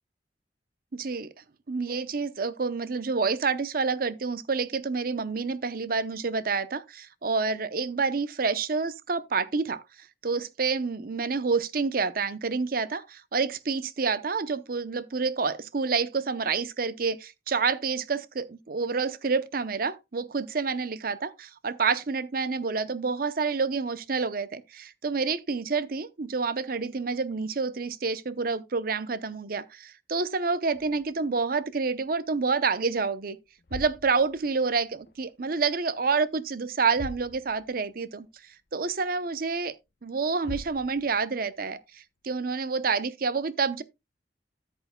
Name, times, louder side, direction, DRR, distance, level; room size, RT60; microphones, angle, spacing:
voice 1, 0.9-1.3 1.7-9.8 10.2-33.4 33.7-38.3 38.7-39.7 40.0-43.8, right 4 dB, 55° right, 0.7 m, -28 dB
sound 1, 30.7-32.4 32.7-33.0 33.5-35.3 35.6-36.3 36.5-36.6 36.9-37.9 38.3-38.4 39.0-39.1 40.1-40.2 40.4-41.4, left 2 dB, 65° left, 0.7 m, -44 dB
13.0 x 8.1 x 2.2 m
head